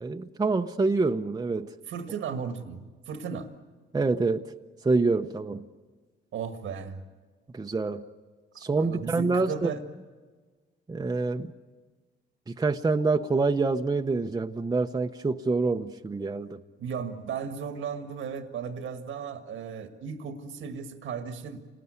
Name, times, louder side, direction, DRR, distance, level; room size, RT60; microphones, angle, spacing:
voice 1, 0.0-1.7 3.9-4.4 4.8-5.6 7.5-8.0 8.6-9.7 10.9-11.5 12.5-16.6, right 3 dB, 20° right, 5 dB, 0.8 m, -26 dB
voice 2, 1.9-3.5 6.3-7.0 8.8-9.8 16.8-21.6, right 6 dB, 75° right, 7 dB, 1.7 m, -35 dB
27.0 x 19.5 x 9.6 m, 1.4 s
cardioid pair, 90°, 20 cm